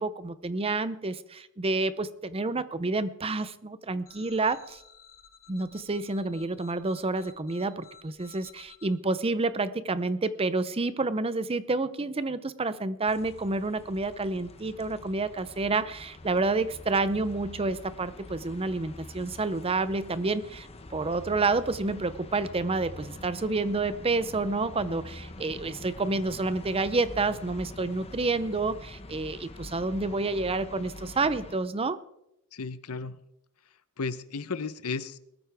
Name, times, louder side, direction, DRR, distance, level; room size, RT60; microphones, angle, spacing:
voice 1, 0.0-4.8 5.5-32.0, right 3 dB, 25° right, 14 dB, 0.6 m, -29 dB
sound 1, 4.0-8.9, left 7 dB, 45° left, 4.4 m, -54 dB
sound 2, 13.0-31.6, left 2 dB, 25° left, 1.0 m, -45 dB
voice 2, 32.5-33.2 34.0-35.2, left 4 dB, 80° left, 14 dB, 0.8 m, -34 dB
20.0 x 13.5 x 3.5 m, 0.81 s
head